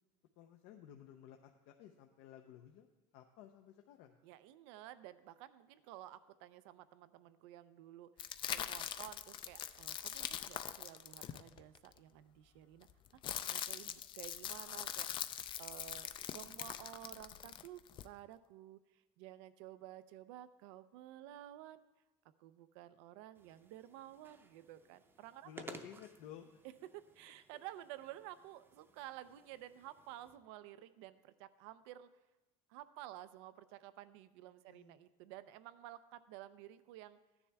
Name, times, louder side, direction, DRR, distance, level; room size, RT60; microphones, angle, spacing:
voice 1, 0.4-2.9 3.1-4.2 25.4-26.6 34.7-35.0, left 10 dB, 70° left, 4 dB, 0.7 m, -55 dB
voice 2, 4.2-8.1 8.5-12.9 13.1-13.2 13.5-21.8 22.4-25.5 26.9-32.1 32.7-37.2, right 13 dB, 90° right, 14 dB, 0.5 m, -53 dB
sound 1, 8.2-11.9 12.8-18.1, left 10 dB, 35° left, 0.4 m, -43 dB
sound 2, 23.3-30.4, right 3 dB, 15° right, 0.6 m, -57 dB
14.0 x 9.8 x 3.4 m, 1.1 s
cardioid pair, 145°, 14 cm